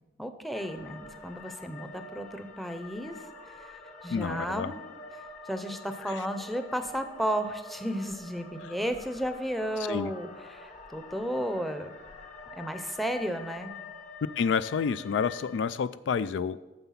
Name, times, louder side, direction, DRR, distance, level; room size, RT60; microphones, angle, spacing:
voice 1, 0.2-3.1 3.6-3.7 4.0-4.8 5.5-11.9 12.6-13.7, equal, ahead, 8 dB, 0.6 m, -33 dB
sound 1, 0.5-15.6, left 3 dB, 45° left, 1.2 m, -47 dB
voice 2, 4.1-4.7 6.1-6.2 9.9-10.1 14.4-16.6, left 6 dB, 70° left, 15 dB, 0.3 m, -29 dB
9.4 x 6.8 x 5.8 m, 1.1 s
head